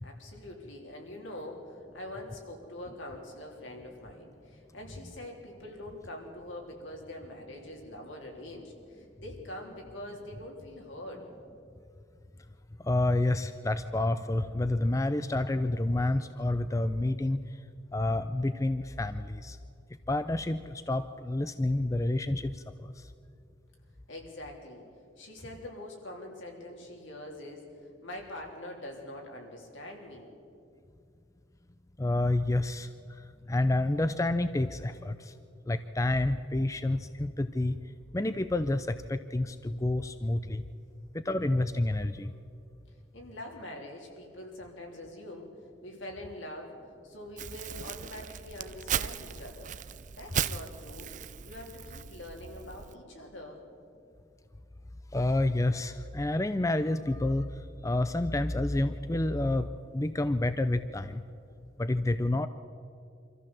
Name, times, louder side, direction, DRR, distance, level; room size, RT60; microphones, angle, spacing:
voice 1, 0.0-11.3 24.1-24.8 25.2-27.6 28.0-30.3 43.1-45.5 45.8-46.8 47.0-49.7 50.2-51.1 51.4-53.6, left 1 dB, 75° left, 1 dB, 3.5 m, -44 dB
voice 2, 12.8-17.4 17.9-19.6 20.1-22.9 32.0-32.9 33.5-35.3 35.7-37.8 38.1-40.6 41.2-42.3 55.1-57.5 57.8-61.2 61.8-62.5, left 2 dB, 15° left, 11 dB, 0.4 m, -29 dB
Crumpling crinkling, 47.4-53.0, right 8 dB, 40° right, 0.5 m, -37 dB
25.0 x 14.5 x 7.4 m, 2.5 s
head